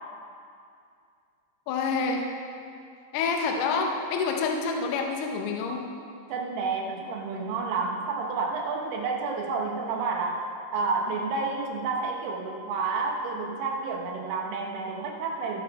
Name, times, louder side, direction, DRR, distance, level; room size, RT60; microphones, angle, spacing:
voice 1, 1.7-2.3 3.1-5.9, left 4 dB, 75° left, 2 dB, 2.6 m, -27 dB
voice 2, 6.3-10.5 10.7-15.6, right 4 dB, 75° right, 1 dB, 2.9 m, -30 dB
18.0 x 7.5 x 4.1 m, 2.4 s
omnidirectional pair, 5.1 m